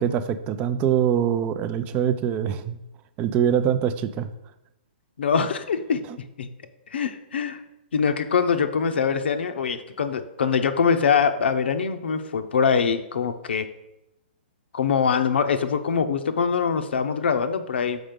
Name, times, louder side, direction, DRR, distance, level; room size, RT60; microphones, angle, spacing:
voice 1, 0.0-2.8 3.2-4.3, right 9 dB, 25° right, 12 dB, 0.4 m, -23 dB
voice 2, 5.2-6.5 6.9-7.6 7.9-13.7 14.7-18.0, left 6 dB, 80° left, 8 dB, 0.7 m, -23 dB
6.2 x 5.0 x 5.1 m, 0.88 s
hypercardioid pair, 150°, 6 cm